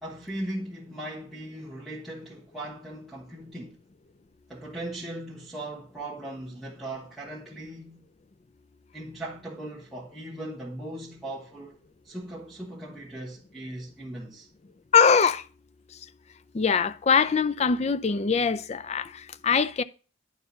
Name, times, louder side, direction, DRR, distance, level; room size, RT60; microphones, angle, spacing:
voice 1, 0.0-3.8 4.5-8.0 8.9-11.8 12.0-14.5, right 1 dB, ahead, 1.2 m, -38 dB
voice 2, 14.9-15.4 16.5-19.8, left 6 dB, 35° left, 0.4 m, -22 dB
10.0 x 4.5 x 5.5 m
head